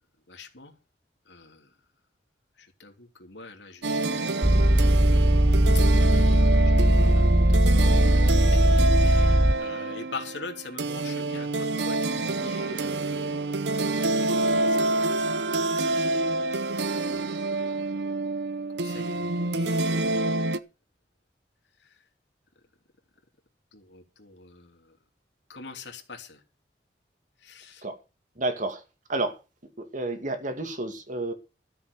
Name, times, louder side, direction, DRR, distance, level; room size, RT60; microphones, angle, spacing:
voice 1, 0.3-0.7 1.3-1.7 2.6-4.7 6.1-7.6 7.9-8.7 9.0-13.6 14.5-16.6 16.9-17.2 18.7-20.4 21.8-21.9 23.7-25.0 25.5-26.4 27.4-27.9, left 3 dB, 90° left, 3.2 m, -44 dB
sound 1, 3.8-20.6, right 2 dB, 70° right, 0.8 m, -27 dB
sound 2, 4.4-9.5, right 1 dB, 20° right, 0.7 m, -19 dB
voice 2, 28.4-28.8 29.1-29.3 29.8-31.3, right 2 dB, 45° right, 2.4 m, -30 dB
13.5 x 7.8 x 6.8 m
head